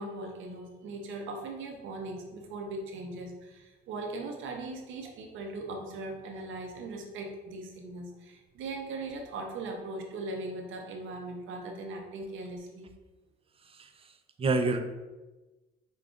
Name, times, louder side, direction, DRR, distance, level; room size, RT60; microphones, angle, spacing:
voice 1, 0.0-12.9, right 2 dB, 80° right, 3 dB, 0.7 m, -39 dB
voice 2, 13.7-14.1 14.4-14.8, right 3 dB, 30° right, 7 dB, 0.4 m, -28 dB
5.0 x 2.3 x 2.4 m, 1.1 s
cardioid pair, 90°, 20 cm